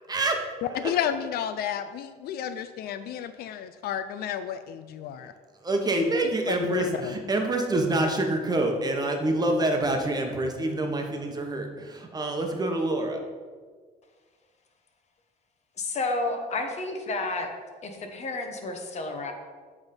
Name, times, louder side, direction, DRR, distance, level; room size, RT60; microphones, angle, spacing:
voice 1, 0.1-0.4 0.8-0.9 5.6-13.2, right 2 dB, 25° right, 3 dB, 1.0 m, -26 dB
voice 2, 0.6-5.3 6.5-7.1, left 9 dB, 65° left, 11 dB, 0.4 m, -31 dB
voice 3, 15.8-17.5 17.8-19.3, left 2 dB, 40° left, 5 dB, 1.0 m, -31 dB
8.1 x 3.5 x 5.2 m, 1.6 s
cardioid pair, 110°, 17 cm